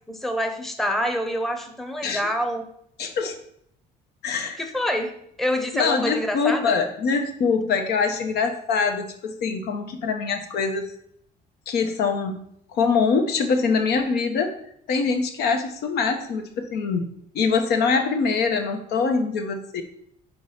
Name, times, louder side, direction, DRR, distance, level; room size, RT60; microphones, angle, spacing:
voice 1, 0.1-2.7 4.6-5.1 5.4-6.8, equal, ahead, 5 dB, 0.8 m, -26 dB
voice 2, 3.0-3.4 4.2-4.6 5.7-10.9 11.7-12.5 12.7-14.5 14.9-19.8, left 5 dB, 75° left, 5 dB, 0.9 m, -24 dB
4.7 x 4.3 x 5.7 m, 0.69 s
cardioid pair, 110°, 17 cm